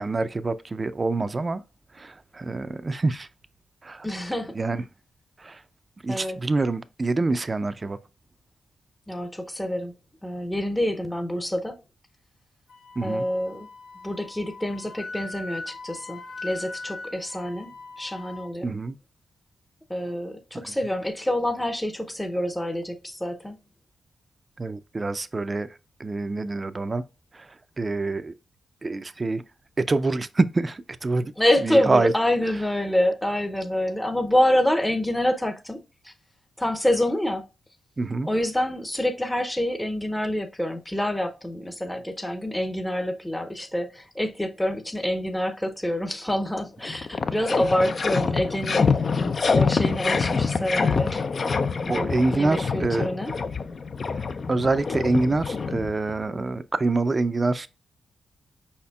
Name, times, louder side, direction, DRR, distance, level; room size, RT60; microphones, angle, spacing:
voice 1, 0.0-1.6 1.9-3.3 3.8-4.1 4.5-4.8 5.4-5.6 6.0-8.0 13.0-13.3 18.6-19.0 20.5-20.7 24.6-25.7 26.0-27.0 27.3-28.3 28.8-29.4 29.9-31.3 31.6-32.1 38.0-38.3 51.9-53.1 54.1-54.2 54.5-57.7, right 3 dB, 35° right, 0.4 m, -26 dB
voice 2, 4.0-4.6 6.1-6.4 9.1-9.9 10.2-11.8 13.0-13.7 14.0-17.7 18.0-18.7 19.9-23.5 31.4-36.1 36.6-37.4 38.2-48.9 49.5-51.2 51.9-53.4, left 1 dB, 10° left, 0.6 m, -27 dB
Wind instrument woodwind instrument, 12.7-18.5, left 3 dB, 80° left, 1.0 m, -40 dB
sound 1, 46.5-46.6 46.8-56.2, left 5 dB, 55° left, 0.4 m, -26 dB
4.9 x 4.3 x 2.3 m
supercardioid pair, 50°, 0 cm